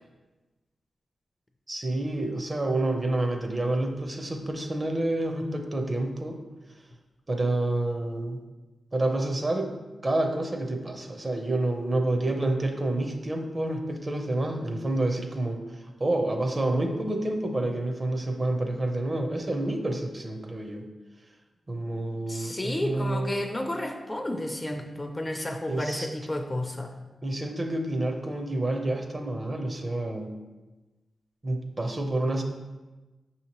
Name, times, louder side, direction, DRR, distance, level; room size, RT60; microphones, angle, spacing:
voice 1, 1.7-6.4 7.3-8.4 8.9-9.7 10.0-20.9 21.7-23.4 25.7-26.1 27.2-30.4 31.4-32.4, right 1 dB, 35° right, 4 dB, 0.5 m, -28 dB
voice 2, 22.3-26.9, left 1 dB, 20° left, 5 dB, 0.3 m, -31 dB
5.7 x 2.8 x 2.9 m, 1.2 s
cardioid pair, 75°, 0 cm